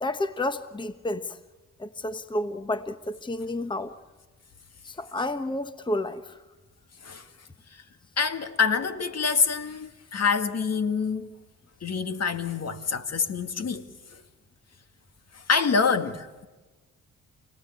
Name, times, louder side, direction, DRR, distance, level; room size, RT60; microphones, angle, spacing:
voice 1, 0.0-1.4 1.8-4.0 4.8-6.4, left 1 dB, 15° left, 1.2 m, -31 dB
voice 2, 8.2-11.3 11.8-13.9 14.1-14.2 15.3-16.5, left 5 dB, 50° left, 2.0 m, -26 dB
28.5 x 18.5 x 8.7 m
supercardioid pair, 60°, 32 cm